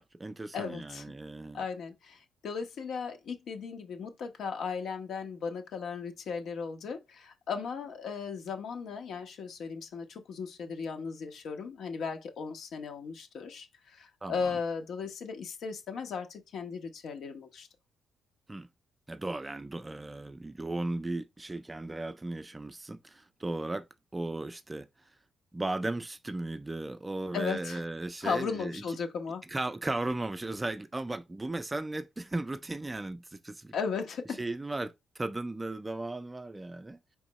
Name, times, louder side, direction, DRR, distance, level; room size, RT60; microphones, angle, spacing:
voice 1, 0.0-1.6 14.2-14.5 18.5-18.7 19.1-23.9 24.1-24.9 25.5-28.8 29.5-33.7 34.4-37.0, right 2 dB, 15° right, 0.3 m, -36 dB
voice 2, 0.5-1.0 1.5-17.7 27.3-27.8 28.2-29.4 33.7-34.4, left 5 dB, 70° left, 1.0 m, -36 dB
4.4 x 3.5 x 3.1 m
cardioid pair, 90°, 0 cm